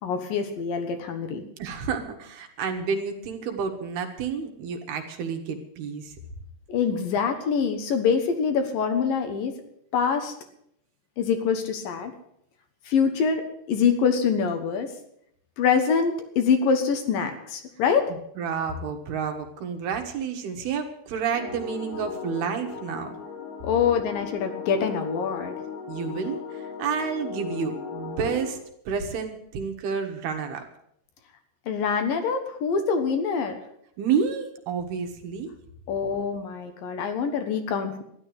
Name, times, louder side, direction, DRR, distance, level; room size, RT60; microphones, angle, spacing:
voice 1, 0.0-1.4 6.7-9.6 9.9-10.3 11.2-12.2 12.9-14.9 15.6-18.1 23.6-25.5 31.7-33.5 35.9-38.0, left 6 dB, 65° left, 6 dB, 2.8 m, -25 dB
voice 2, 1.6-6.2 18.1-23.2 25.9-28.6 28.9-30.6 34.0-35.5, right 6 dB, 75° right, 4 dB, 3.5 m, -30 dB
sound 1, 21.3-28.5, left 6 dB, 90° left, 5.6 m, -37 dB
13.0 x 11.0 x 7.9 m, 0.72 s
omnidirectional pair, 4.6 m